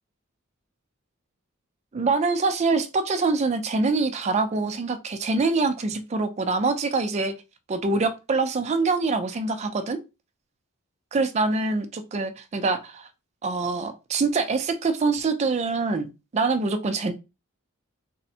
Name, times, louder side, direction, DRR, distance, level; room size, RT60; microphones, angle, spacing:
voice 1, 1.9-7.3 7.7-10.0 11.1-13.1 13.4-16.1 16.3-17.1, right 3 dB, 30° right, 8 dB, 0.3 m, -24 dB
3.3 x 2.1 x 2.7 m, 0.27 s
head